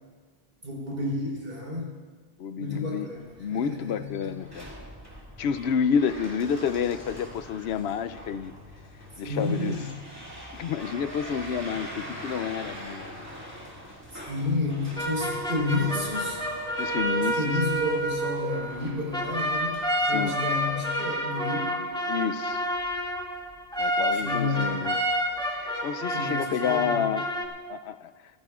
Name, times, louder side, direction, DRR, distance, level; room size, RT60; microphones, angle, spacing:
voice 1, 0.6-1.9 2.6-4.3 9.2-9.9 14.1-16.4 17.2-19.8 20.1-21.8 24.1-24.9 26.1-27.0, left 2 dB, 65° right, -2 dB, 4.2 m, -31 dB
voice 2, 2.4-3.1 3.4-4.7 5.4-8.5 9.2-9.8 10.5-13.3 16.8-17.6 20.0-20.4 22.1-22.6 23.8-25.0 25.5-27.3 27.7-28.1, left 7 dB, 85° left, 12 dB, 0.8 m, -29 dB
sound 1, 3.2-20.7, equal, 15° right, 2.4 m, -44 dB
sound 2, 15.0-27.4, equal, 5° left, 2.1 m, -29 dB
25.0 x 15.0 x 2.4 m, 1.4 s
omnidirectional pair, 1.0 m